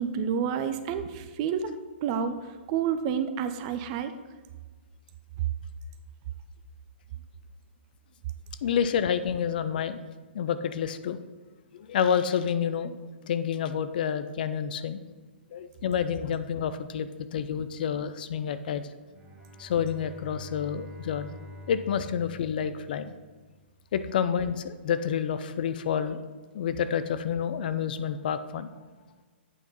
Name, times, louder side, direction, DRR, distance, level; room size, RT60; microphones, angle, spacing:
voice 1, 0.0-1.7 2.0-4.1, right 7 dB, 35° right, 10 dB, 0.6 m, -29 dB
voice 2, 8.6-10.0 10.3-11.2 11.7-12.9 13.2-15.0 15.5-18.8 19.6-21.4 21.7-23.1 23.9-26.2 26.5-28.7, left 8 dB, 50° left, 12 dB, 0.5 m, -29 dB
Bowed string instrument, 19.1-23.5, left 1 dB, 15° right, 1.2 m, -47 dB
8.3 x 4.5 x 5.4 m, 1.4 s
figure-of-eight pair, 120°, 6 cm